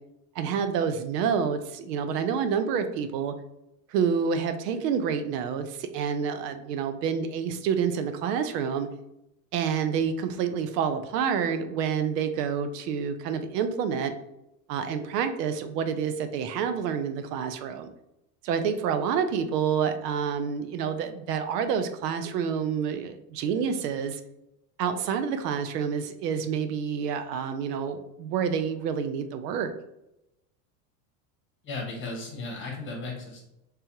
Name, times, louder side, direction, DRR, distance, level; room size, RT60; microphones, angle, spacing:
voice 1, 0.4-3.3 3.9-8.9 9.5-14.1 14.7-17.9 18.4-24.2 24.8-29.7, right 7 dB, 75° right, 9 dB, 0.6 m, -28 dB
voice 2, 31.6-33.5, left 3 dB, 25° left, -1 dB, 1.2 m, -35 dB
3.4 x 3.3 x 2.9 m, 0.86 s
supercardioid pair, 135°, 49 cm